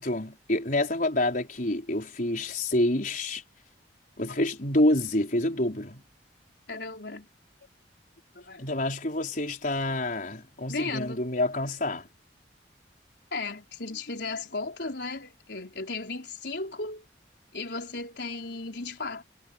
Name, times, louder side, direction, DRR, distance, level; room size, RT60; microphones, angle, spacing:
voice 1, 0.0-3.4 4.2-6.0 8.6-12.1, left 1 dB, 50° left, 5.0 m, -27 dB
voice 2, 6.7-7.3 8.3-8.7 10.7-11.2 13.3-17.1 17.5-19.2, left 3 dB, 70° left, 4.7 m, -35 dB
head